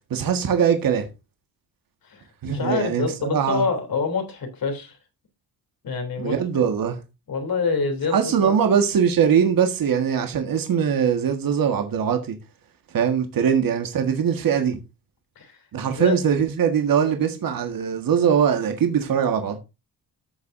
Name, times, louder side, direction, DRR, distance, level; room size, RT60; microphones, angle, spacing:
voice 1, 0.1-1.1 2.4-3.6 6.2-7.0 8.1-12.4 12.9-14.8 15.7-19.6, right 7 dB, 55° right, 1.7 m, -21 dB
voice 2, 2.0-5.0 5.8-6.4 7.3-8.6 15.3-15.6 15.8-16.2, left 4 dB, 60° left, 3.3 m, -26 dB
13.0 x 6.9 x 2.7 m
cardioid pair, 100°, 40 cm